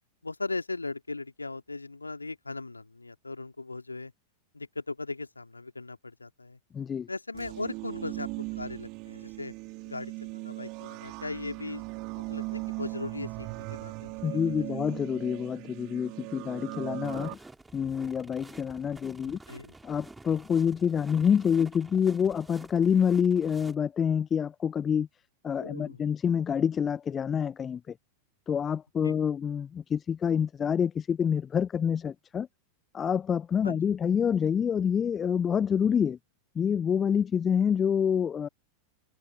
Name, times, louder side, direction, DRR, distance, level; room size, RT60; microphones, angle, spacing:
voice 1, 0.2-4.1 4.5-6.6 7.1-9.5 9.9-14.4 14.7-14.8 19.2-19.7 25.6-26.0 29.0-29.1 33.6-33.9, left 3 dB, 80° left, 2.6 m, -38 dB
voice 2, 6.7-7.1 14.2-17.4 17.7-19.4 19.8-25.1 25.4-27.9 28.5-32.5 32.9-36.2 36.6-38.5, left 7 dB, 20° left, 0.3 m, -27 dB
sound 1, 7.3-17.4, right 26 dB, 40° right, 2.4 m, -38 dB
sound 2, 17.0-23.7, right 3 dB, 10° right, 3.3 m, -50 dB
figure-of-eight pair, 90°, 0 cm